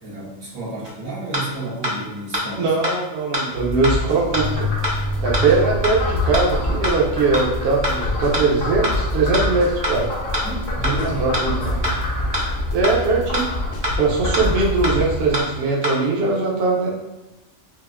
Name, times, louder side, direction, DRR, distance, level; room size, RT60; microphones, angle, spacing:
voice 1, 0.0-2.7 10.4-11.2 11.5-12.0, right 2 dB, 85° right, -7 dB, 1.8 m, -31 dB
sound 1, 0.8-0.9 1.3-1.4 1.8-1.9 2.3-2.4 2.8-2.9 3.3-3.4 3.8-3.9 4.3-4.4 4.8-4.9 5.3-5.4 5.8-5.9 6.3-6.4 6.8-6.9 7.3-7.4 7.8-7.9 8.3-8.4 8.8-8.9 9.3-9.4 9.8-9.9 10.3-10.4 10.8-10.9 11.3-11.4 11.8-11.9 12.3-12.4 12.8-12.9 13.3-13.4 13.8-13.9 14.3-14.4 14.8-14.9 15.3-15.4 15.8-15.9, equal, 30° right, 0.5 m, -23 dB
voice 2, 2.6-4.7 5.2-10.1 11.0-11.8 12.7-13.4 14.0-16.9, right 3 dB, 55° right, -2 dB, 0.8 m, -20 dB
sound 2, 3.6-4.5 4.8-5.7 6.0-8.4 8.7-11.1 11.5-15.1, left 1 dB, 60° left, 0.6 m, -27 dB
Frog, 4.3-15.4, left 1 dB, 75° left, 1.3 m, -27 dB
4.6 x 2.5 x 2.5 m, 1.0 s
omnidirectional pair, 1.4 m